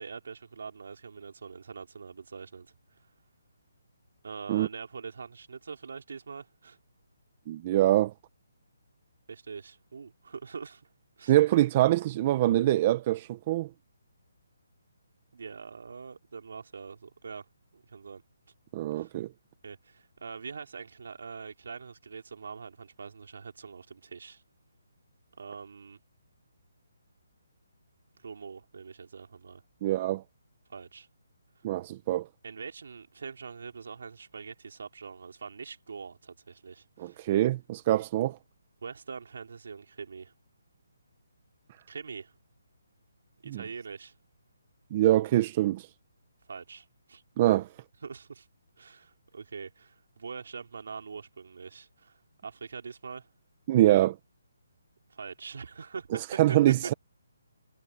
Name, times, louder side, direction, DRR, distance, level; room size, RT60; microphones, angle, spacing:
voice 1, 0.0-2.7 4.2-6.8 9.3-10.9 11.2-11.4 15.3-17.5 17.7-18.2 18.9-19.1 19.6-24.4 25.3-26.0 28.2-29.6 30.7-31.1 32.4-37.3 38.8-40.3 41.9-42.3 43.4-44.1 46.5-47.2 48.0-48.5 48.8-53.3 55.1-57.0, right 5 dB, 65° right, 3.8 m, -43 dB
voice 2, 7.5-8.1 11.2-13.7 18.7-19.3 29.8-30.2 31.6-32.3 37.0-38.4 43.5-43.6 44.9-45.9 47.4-47.7 53.7-54.2 56.4-56.9, right 14 dB, 25° right, 0.9 m, -24 dB
hypercardioid pair, 170°, 0 cm